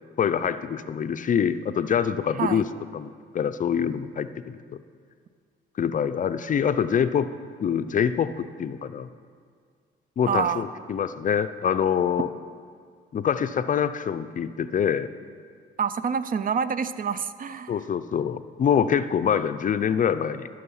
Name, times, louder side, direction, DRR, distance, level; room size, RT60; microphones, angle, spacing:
voice 1, 0.2-2.6 2.9-4.8 5.8-7.3 7.6-9.1 10.2-12.3 13.1-15.1 17.7-20.5, left 8 dB, 40° left, 12 dB, 0.4 m, -25 dB
voice 2, 10.3-10.6 15.8-17.9, right 7 dB, 45° right, 14 dB, 0.5 m, -27 dB
14.0 x 6.4 x 5.5 m, 2.1 s
cardioid pair, 90°, 20 cm